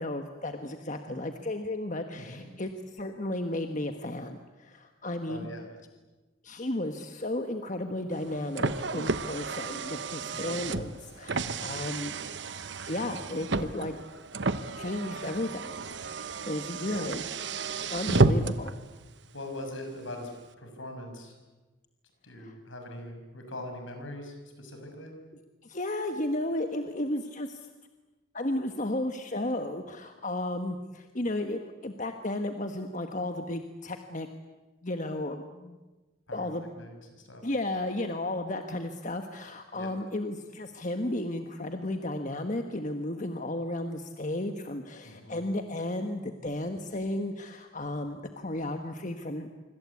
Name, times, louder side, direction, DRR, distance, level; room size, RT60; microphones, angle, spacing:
voice 1, 0.0-5.5 6.4-12.2 12.9-14.0 14.8-15.7 16.5-17.2 17.9-18.7 22.4-22.5 25.6-27.7 28.3-34.3 34.8-35.8 36.3-36.7 37.4-49.5, left 1 dB, 40° left, 6 dB, 1.3 m, -33 dB
voice 2, 5.3-5.7 10.3-10.7 16.9-17.2 19.3-20.3 20.6-21.3 22.2-25.1 36.3-37.5 39.7-39.9 45.0-45.4, left 1 dB, 70° left, 4 dB, 6.4 m, -42 dB
Car, 8.1-18.7, right 3 dB, 60° right, 1.0 m, -31 dB
25.5 x 25.0 x 8.4 m, 1.2 s
head